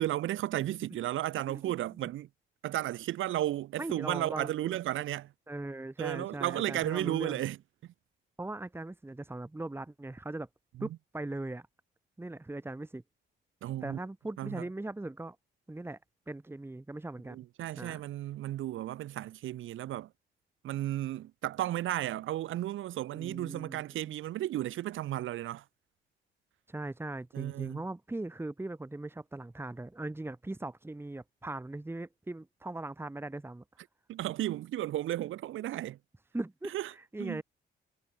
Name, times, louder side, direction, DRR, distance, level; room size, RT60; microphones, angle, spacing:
voice 1, 0.0-2.3 2.6-5.3 6.0-7.6 10.8-10.9 13.6-14.0 14.4-14.6 17.3-20.1 20.6-25.6 27.3-27.8 34.1-36.0 36.7-36.9 37.2-37.4, right 14 dB, 80° right, 3.3 m, -34 dB
voice 2, 3.8-4.8 5.5-7.4 8.4-10.5 10.8-11.7 12.2-13.0 13.8-15.4 15.7-16.0 16.3-17.4 17.8-18.0 23.1-23.8 26.7-33.6 36.3-37.4, right 2 dB, 10° right, 2.0 m, -39 dB
cardioid pair, 90°, 20 cm